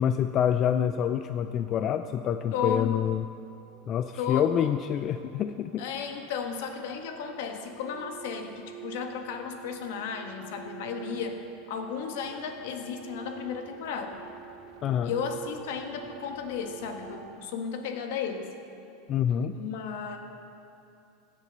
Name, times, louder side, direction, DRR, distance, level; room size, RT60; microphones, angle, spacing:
voice 1, 0.0-3.3 3.9-5.8 14.8-15.1 19.1-19.5, left 9 dB, 40° left, 10 dB, 0.4 m, -27 dB
sound 1, 1.0-17.2, right 9 dB, 55° right, 2.4 m, -49 dB
voice 2, 2.5-2.9 4.2-4.7 5.8-11.4 11.7-14.2 15.0-18.5 19.5-20.2, left 6 dB, 75° left, 5 dB, 1.5 m, -34 dB
16.0 x 8.4 x 6.7 m, 2.8 s
supercardioid pair, 135°, 0 cm